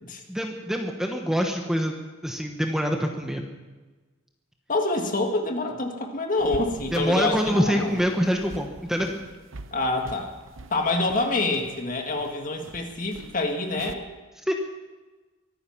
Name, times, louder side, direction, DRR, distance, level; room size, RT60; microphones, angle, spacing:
voice 1, 0.3-3.4 6.9-9.2 14.5-14.6, equal, ahead, 3 dB, 1.1 m, -25 dB
voice 2, 4.7-8.0 9.7-10.3 10.7-14.0, left 2 dB, 40° left, 4 dB, 1.8 m, -26 dB
sound 1, 6.4-13.9, right 2 dB, 70° right, 0.9 m, -44 dB
23.5 x 9.8 x 5.8 m, 1.2 s
head